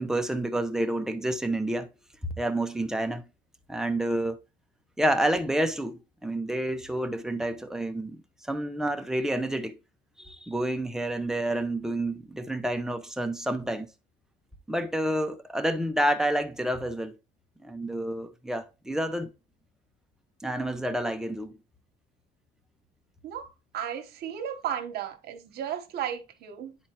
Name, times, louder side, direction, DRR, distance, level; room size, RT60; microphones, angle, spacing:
voice 1, 0.0-1.9 2.2-3.3 3.7-4.4 5.0-9.8 10.2-13.9 14.7-17.1 17.6-19.3 20.4-21.6, right 1 dB, 5° right, 0.8 m, -29 dB
voice 2, 23.7-26.8, right 9 dB, 75° right, 1.1 m, -34 dB
10.5 x 4.3 x 2.9 m
cardioid pair, 110°, 17 cm